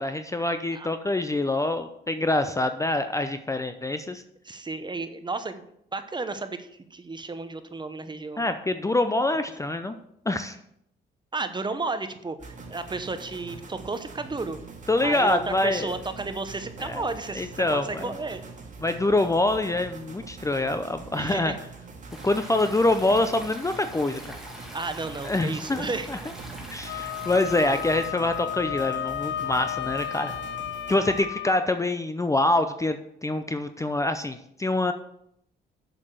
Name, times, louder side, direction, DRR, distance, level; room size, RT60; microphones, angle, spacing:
voice 1, 0.0-4.2 8.4-9.9 10.3-10.6 14.9-15.9 16.8-17.0 17.3-18.1 18.8-21.5 22.2-24.2 25.2-26.2 26.7-30.4 30.9-34.9, left 2 dB, 15° left, 9 dB, 0.6 m, -25 dB
voice 2, 4.4-5.6 5.9-8.4 11.3-14.6 15.0-18.4 21.2-21.6 24.7-26.1, right 3 dB, 20° right, 10 dB, 0.9 m, -33 dB
sound 1, 12.4-31.2, right 4 dB, 40° right, 2.0 m, -43 dB
Stream, 22.1-28.1, equal, ahead, 2.2 m, -44 dB
Wind instrument woodwind instrument, 26.8-31.6, left 11 dB, 65° left, 0.6 m, -33 dB
7.3 x 6.6 x 6.5 m, 0.74 s
cardioid pair, 90°, 20 cm